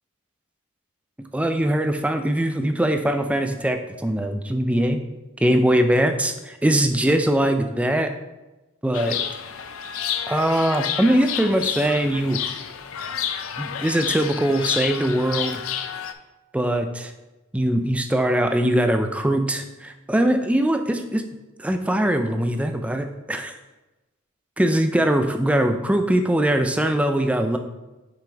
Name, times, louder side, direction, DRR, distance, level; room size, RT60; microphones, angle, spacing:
voice 1, 1.2-5.0 5.4-8.1 8.8-9.2 10.3-12.4 13.6-15.6 16.5-17.1 17.5-21.2 21.6-23.5 24.6-27.6, right 1 dB, 5° right, 6 dB, 0.3 m, -21 dB
Chirp tweet, 8.9-16.1, left 9 dB, 70° left, 0.4 m, -30 dB
5.9 x 5.1 x 3.4 m, 1.1 s
head